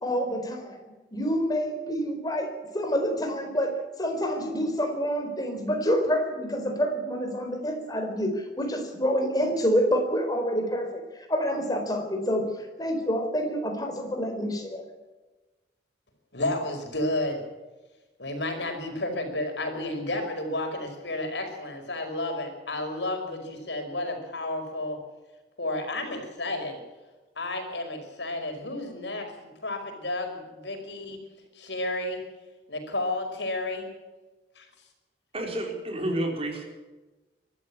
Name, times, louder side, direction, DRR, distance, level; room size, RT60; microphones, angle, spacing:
voice 1, 0.0-0.8 1.1-11.0 11.3-14.9, equal, 20° left, 4 dB, 4.2 m, -27 dB
voice 2, 16.3-17.4 18.2-25.0 25.6-26.8 27.4-31.2 31.5-32.2 32.7-33.9 34.6-34.7, left 2 dB, 80° left, 5 dB, 5.2 m, -31 dB
voice 3, 35.3-36.6, right 1 dB, 35° right, 2 dB, 4.6 m, -30 dB
24.0 x 13.0 x 8.6 m, 1.2 s
head